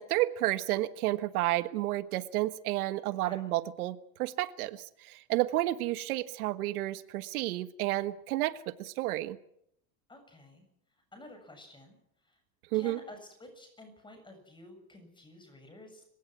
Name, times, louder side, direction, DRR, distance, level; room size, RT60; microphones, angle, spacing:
voice 1, 0.0-9.4 12.7-13.0, right 16 dB, 85° right, 13 dB, 1.4 m, -31 dB
voice 2, 10.1-10.7 11.1-12.0 12.3-12.4 12.7-16.0, left 1 dB, 10° left, 6 dB, 7.4 m, -51 dB
30.0 x 17.5 x 6.2 m, 0.72 s
supercardioid pair, 145°, 43 cm